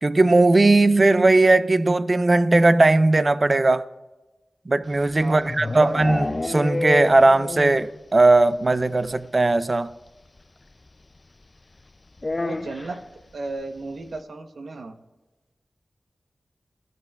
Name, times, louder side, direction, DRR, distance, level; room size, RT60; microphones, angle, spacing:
voice 1, 0.0-3.9 4.7-9.9, right 2 dB, 35° right, 0.4 m, -18 dB
sound 1, 4.9-8.0 8.2-8.3 8.7-8.8 9.0-9.1 10.4-10.5 12.2-13.0, left 2 dB, 35° left, 0.3 m, -29 dB
voice 2, 5.2-5.9 12.4-13.0 13.3-15.0, right 3 dB, 85° right, 0.9 m, -35 dB
19.5 x 13.5 x 2.3 m
wide cardioid pair, 105°, 0 cm